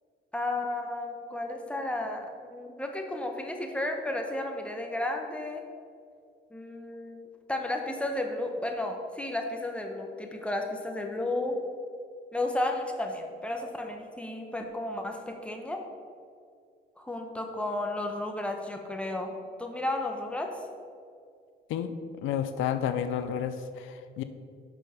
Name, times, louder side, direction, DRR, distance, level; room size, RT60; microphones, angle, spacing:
voice 1, 0.3-5.6 6.5-7.2 7.5-11.6 12.3-15.9 17.0-19.3 19.6-20.6, left 1 dB, 5° left, 3 dB, 1.0 m, -33 dB
voice 2, 22.2-24.2, left 9 dB, 85° left, 10 dB, 0.5 m, -31 dB
6.0 x 5.4 x 5.8 m, 2.2 s
cardioid pair, 90°, 20 cm